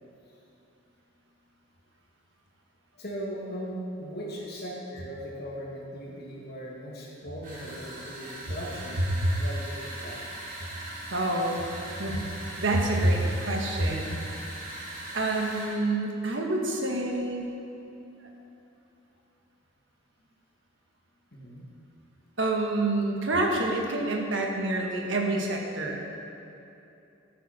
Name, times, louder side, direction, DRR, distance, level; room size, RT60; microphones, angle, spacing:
voice 1, 2.9-10.2 21.3-21.7, equal, 50° left, -4 dB, 2.3 m, -39 dB
sound 1, 7.4-15.8, right 1 dB, 45° right, 2.7 m, -40 dB
voice 2, 11.1-11.7 12.0-12.2 12.6-14.3 15.1-17.5 18.2-18.3 22.4-26.1, right 2 dB, 65° right, 0 dB, 1.6 m, -27 dB
13.5 x 9.8 x 4.3 m, 2.8 s
head